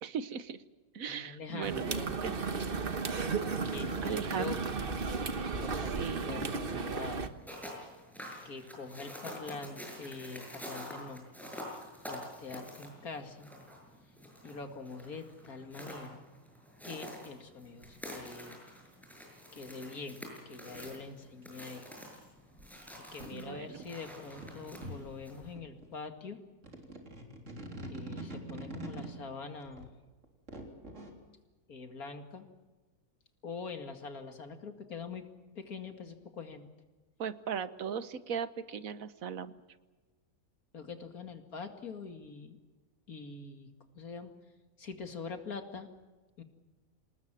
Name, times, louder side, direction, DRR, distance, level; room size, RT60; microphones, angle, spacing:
voice 1, 0.0-0.6 0.9-2.3 4.0-4.6 5.7-6.5 23.3-23.8 37.2-39.5, right 7 dB, 75° right, 13 dB, 1.5 m, -38 dB
voice 2, 1.1-2.1 3.7-5.0 5.6-5.9 6.2-7.3 8.4-11.2 12.1-13.5 14.4-16.2 16.8-18.6 19.5-21.9 23.1-26.4 27.9-29.9 31.7-32.5 33.4-35.2 35.5-36.7 40.7-42.6 43.1-43.7 43.9-44.3 44.8-45.9 46.4-46.5, left 4 dB, 85° left, 6 dB, 2.6 m, -44 dB
sound 1, 1.6-7.3, right 4 dB, 40° right, 1.4 m, -34 dB
sound 2, 7.3-25.5, equal, ahead, 7.2 m, -48 dB
sound 3, 17.8-18.0 19.9-20.1 20.7-21.7 22.6-22.7 23.2-25.1 25.4-25.9 26.6-29.1 29.6-31.1, right 2 dB, 55° right, 3.9 m, -45 dB
27.5 x 19.5 x 7.5 m, 1.3 s
omnidirectional pair, 1.5 m